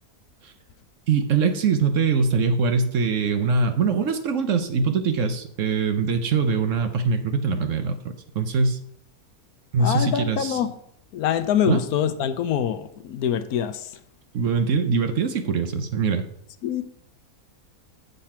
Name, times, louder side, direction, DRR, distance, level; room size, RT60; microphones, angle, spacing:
voice 1, 1.1-8.8 9.7-10.6 11.6-11.8 14.3-16.2, right 5 dB, 60° right, 8 dB, 1.0 m, -23 dB
voice 2, 9.8-10.7 11.1-13.7 16.6-16.8, left 9 dB, 75° left, 11 dB, 1.1 m, -24 dB
7.6 x 6.7 x 4.3 m, 0.69 s
omnidirectional pair, 1.7 m